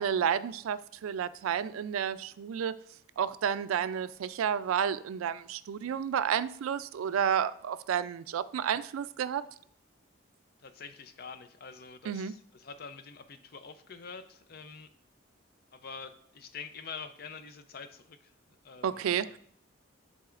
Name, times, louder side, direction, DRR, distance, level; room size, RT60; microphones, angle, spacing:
voice 1, 0.0-2.8 3.2-9.4 12.1-12.3 18.8-19.4, right 8 dB, 90° right, 0.3 m, -31 dB
voice 2, 10.6-14.9 15.7-18.3 18.6-19.4, left 5 dB, 50° left, 0.5 m, -46 dB
10.5 x 4.1 x 2.4 m
head